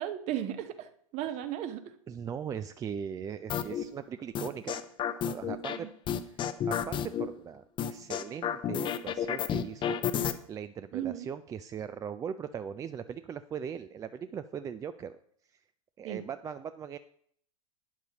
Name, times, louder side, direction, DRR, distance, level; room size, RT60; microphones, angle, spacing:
voice 1, 0.0-1.9 5.7-5.9 10.9-11.3 16.0-16.2, right 11 dB, 40° right, 10 dB, 1.0 m, -35 dB
voice 2, 2.1-4.8 5.2-5.9 6.3-15.1 16.0-17.0, right 7 dB, 20° right, 12 dB, 0.4 m, -39 dB
sound 1, 3.5-3.8 4.3-5.8 6.1-7.3 7.8-10.3, left 9 dB, 25° left, 0.7 m, -31 dB
12.0 x 9.2 x 3.0 m, 0.65 s
figure-of-eight pair, 95°, 18 cm